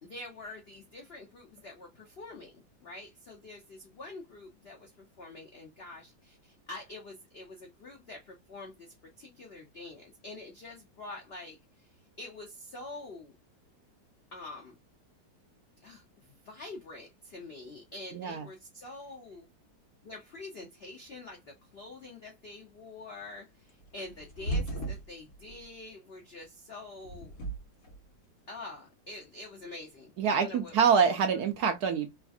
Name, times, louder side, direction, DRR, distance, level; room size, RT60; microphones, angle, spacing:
voice 1, 0.0-13.3 14.3-14.7 15.8-19.5 20.0-27.3 28.5-30.8, left 2 dB, 70° left, 0.5 m, -46 dB
voice 2, 18.1-18.5 30.2-32.1, right 6 dB, 70° right, 1.0 m, -25 dB
sound 1, 23.7-25.6 26.9-28.0, right 1 dB, 45° left, 1.7 m, -36 dB
3.2 x 2.4 x 2.5 m
omnidirectional pair, 2.0 m